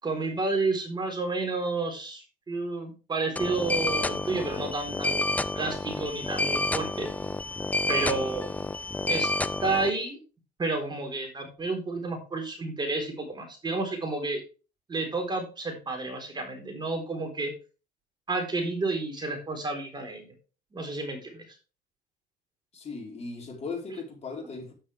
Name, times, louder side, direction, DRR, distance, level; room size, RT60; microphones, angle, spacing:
voice 1, 0.0-7.1 7.9-8.5 9.1-9.3 9.6-10.2 10.6-14.4 14.9-17.5 18.3-20.3 20.7-21.4, right 3 dB, 25° right, 4.0 m, -31 dB
sound 1, 3.4-9.9, left 2 dB, 10° left, 0.6 m, -29 dB
voice 2, 22.7-24.7, left 4 dB, 40° left, 4.2 m, -37 dB
9.8 x 9.4 x 3.4 m
cardioid pair, 110°, 17 cm